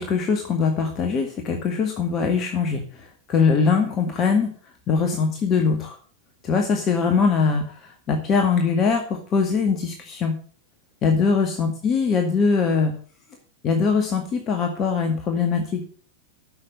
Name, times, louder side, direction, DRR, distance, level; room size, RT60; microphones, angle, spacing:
voice 1, 0.0-4.5 4.9-6.0 6.4-10.4 11.0-12.9 13.6-15.8, left 5 dB, 30° left, 4 dB, 2.0 m, -22 dB
12.0 x 7.0 x 7.7 m, 0.43 s
figure-of-eight pair, 90°, 0 cm